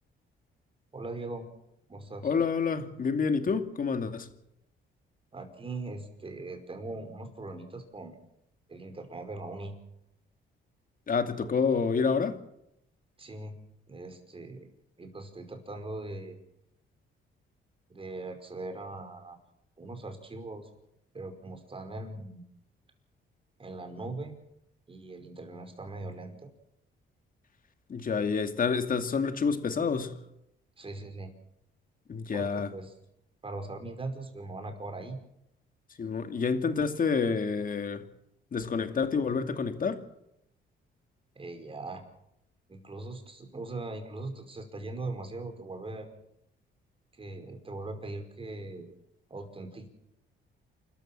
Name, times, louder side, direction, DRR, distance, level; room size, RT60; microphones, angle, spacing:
voice 1, 0.9-1.5 1.9-2.3 5.3-8.2 8.7-9.8 13.2-13.6 13.9-14.7 15.0-16.4 17.9-19.4 19.8-20.7 21.1-22.4 23.6-24.4 24.9-26.5 30.8-31.3 32.3-32.9 33.4-35.2 41.4-42.0 42.7-46.1 47.1-48.9 49.3-49.9, right 2 dB, 25° right, 5.2 m, -40 dB
voice 2, 2.2-4.3 11.1-12.4 27.9-30.1 32.1-32.7 36.0-38.0 38.5-40.0, left 5 dB, 45° left, 2.4 m, -28 dB
28.5 x 13.5 x 7.5 m
cardioid pair, 90°, 20 cm